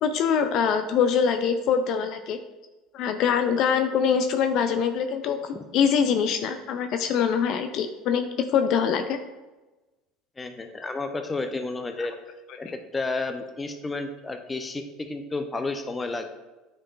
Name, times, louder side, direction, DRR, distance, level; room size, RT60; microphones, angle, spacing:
voice 1, 0.0-2.4 2.9-8.3 8.5-9.2, left 7 dB, 60° left, 7 dB, 0.4 m, -24 dB
voice 2, 10.4-12.2 12.6-16.2, left 3 dB, 20° left, 7 dB, 0.7 m, -31 dB
8.7 x 4.5 x 2.5 m, 1.1 s
hypercardioid pair, 80°, 0 cm